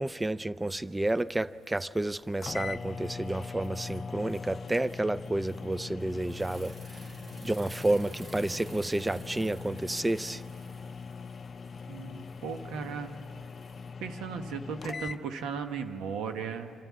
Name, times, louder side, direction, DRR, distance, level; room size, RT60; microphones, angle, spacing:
voice 1, 0.0-6.7 7.4-10.4, right 1 dB, 15° right, 0.4 m, -30 dB
sound 1, 0.6-13.9, right 1 dB, 35° right, 2.4 m, -53 dB
sound 2, 2.1-2.2 2.4-15.2, left 5 dB, 40° left, 0.5 m, -41 dB
voice 2, 11.9-13.1 14.0-16.7, right 6 dB, 85° right, 1.2 m, -36 dB
25.5 x 13.0 x 8.6 m
cardioid pair, 90°, 0 cm